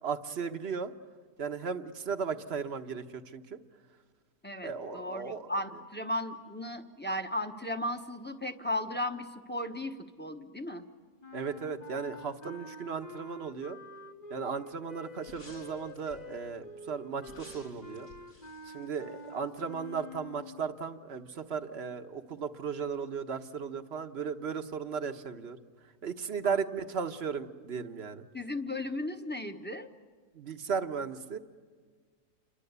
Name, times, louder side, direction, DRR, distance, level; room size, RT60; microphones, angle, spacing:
voice 1, 0.0-0.9 1.4-3.6 4.6-5.5 11.3-13.8 14.3-18.1 18.6-25.6 26.0-28.3 30.3-31.4, right 6 dB, 45° right, 8 dB, 1.3 m, -36 dB
voice 2, 4.4-10.8 26.4-26.6 28.3-29.9, left 1 dB, 5° left, 5 dB, 1.1 m, -36 dB
sound 1, 11.2-20.7, left 3 dB, 30° left, 1.1 m, -48 dB
sound 2, 15.2-16.4 17.2-19.7 20.0-20.1, left 1 dB, 85° left, 6.8 m, -54 dB
29.0 x 23.5 x 8.2 m, 1.6 s
omnidirectional pair, 1.7 m